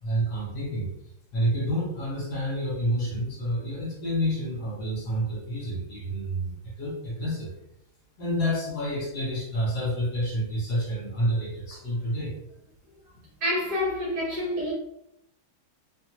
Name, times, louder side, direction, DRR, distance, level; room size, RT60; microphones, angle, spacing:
voice 1, 0.0-0.9 1.3-7.5 8.2-12.3, equal, 60° left, 1.4 m, -29 dB
voice 2, 13.4-14.7, left 1 dB, 65° right, 1.2 m, -27 dB
3.1 x 2.1 x 3.0 m
omnidirectional pair, 2.1 m